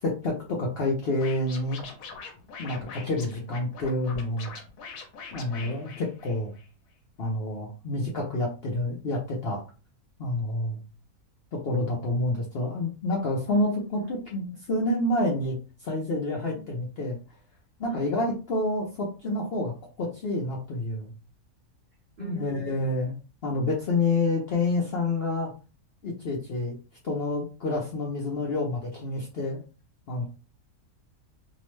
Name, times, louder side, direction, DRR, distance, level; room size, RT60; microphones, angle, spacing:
voice 1, 0.0-1.9 2.6-4.5 5.3-6.5 7.2-9.6 10.2-10.8 11.5-15.6 15.8-17.2 17.8-19.7 20.0-21.1 22.2-23.1 23.4-25.5 26.0-26.8 27.0-29.6 30.1-30.2, left 2 dB, 60° left, -2 dB, 0.7 m, -28 dB
Scratching (performance technique), 1.2-6.7, left 4 dB, 75° left, 1.1 m, -42 dB
voice 2, 16.4-16.7 17.8-18.1 22.2-22.9, right 3 dB, 45° right, -1 dB, 0.8 m, -45 dB
2.8 x 2.1 x 3.1 m, 0.33 s
omnidirectional pair, 1.5 m